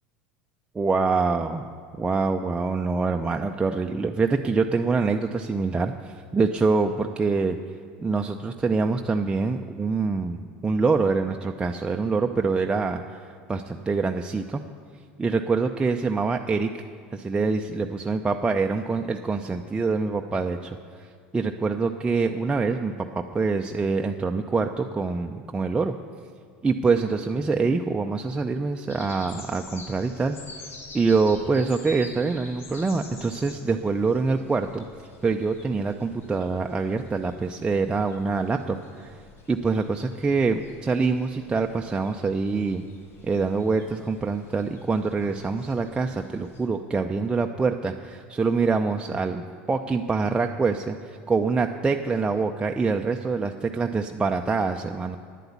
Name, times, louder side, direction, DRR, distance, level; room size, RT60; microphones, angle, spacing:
voice 1, 0.8-1.7 2.0-7.6 8.0-14.6 15.2-16.8 17.1-25.9 26.6-30.4 30.9-34.9 35.2-39.2 39.5-42.8 43.2-55.2, right 4 dB, 15° right, 3 dB, 0.5 m, -25 dB
sound 1, 28.9-46.7, left 3 dB, 40° left, 2.2 m, -48 dB
10.0 x 7.9 x 8.4 m, 2.1 s
hypercardioid pair, 90°, 6 cm